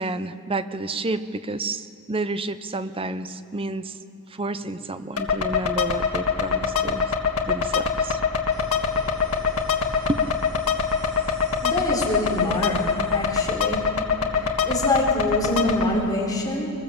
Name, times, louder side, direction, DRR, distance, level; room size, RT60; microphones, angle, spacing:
voice 1, 0.0-4.0 4.3-7.1 7.5-8.2 10.1-10.2, right 2 dB, 25° right, 11 dB, 0.7 m, -30 dB
sound 1, 5.2-15.8, left 6 dB, 85° left, 1.6 m, -24 dB
sound 2, 8.5-13.6, right 1 dB, 85° right, 4.7 m, -44 dB
voice 2, 11.6-12.8 13.1-13.8 14.3-16.7, left 1 dB, 20° left, -3 dB, 3.9 m, -25 dB
22.0 x 20.5 x 7.2 m, 2.5 s
head